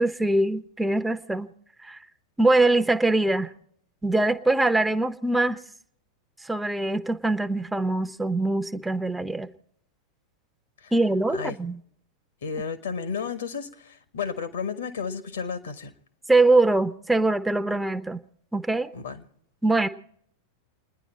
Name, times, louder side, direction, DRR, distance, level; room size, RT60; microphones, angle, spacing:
voice 1, 0.0-1.5 1.8-2.0 2.4-3.5 4.0-5.6 6.4-9.5 10.9-11.8 16.3-18.2 18.5-18.9 19.6-19.9, right 2 dB, 5° right, 0.7 m, -23 dB
voice 2, 12.4-15.9 18.9-19.3, left 6 dB, 65° left, 1.6 m, -32 dB
29.5 x 10.5 x 4.3 m
figure-of-eight pair, 90°, 0 cm